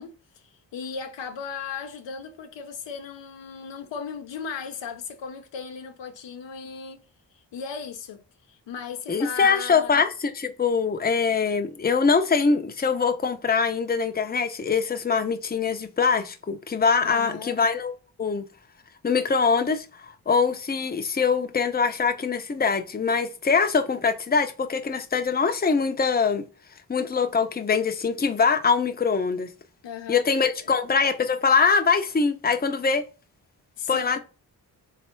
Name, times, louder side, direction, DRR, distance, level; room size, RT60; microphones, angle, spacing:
voice 1, 0.0-7.0 7.5-8.2 8.5-10.0 17.0-17.6 29.8-30.2 30.6-30.7 33.8-34.2, left 6 dB, 85° left, 0.8 m, -36 dB
voice 2, 9.1-18.4 19.0-26.4 26.9-29.5 30.1-33.0 33.9-34.2, left 5 dB, 20° left, 0.6 m, -23 dB
3.6 x 3.3 x 4.4 m
cardioid pair, 60°, 42 cm